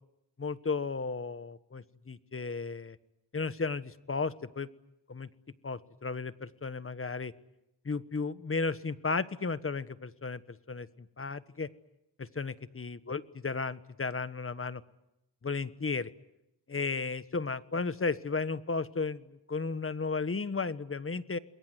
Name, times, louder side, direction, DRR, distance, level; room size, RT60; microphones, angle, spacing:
voice 1, 0.4-3.0 3.3-4.7 5.1-5.3 5.6-7.3 7.8-11.7 12.2-14.8 15.4-16.1 16.7-21.4, left 4 dB, 30° left, 14 dB, 1.2 m, -34 dB
28.0 x 22.0 x 9.5 m, 0.86 s
cardioid pair, 85°, 43 cm